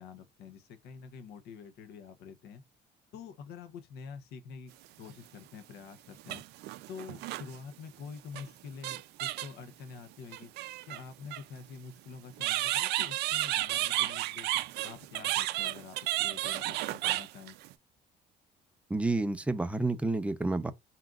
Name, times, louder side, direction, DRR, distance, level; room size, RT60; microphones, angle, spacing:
voice 1, 0.0-2.6 3.1-6.4 6.9-10.5 10.9-14.5 14.8-17.6, left 6 dB, 75° left, 0.8 m, -47 dB
sound 1, 5.1-5.2 6.2-7.6 8.3-8.5 8.8-9.6 10.3-11.4 12.4-17.7, right 16 dB, 80° right, 0.4 m, -32 dB
voice 2, 18.9-20.7, right 2 dB, 5° right, 0.5 m, -29 dB
4.3 x 3.8 x 2.4 m
cardioid pair, 110°, 17 cm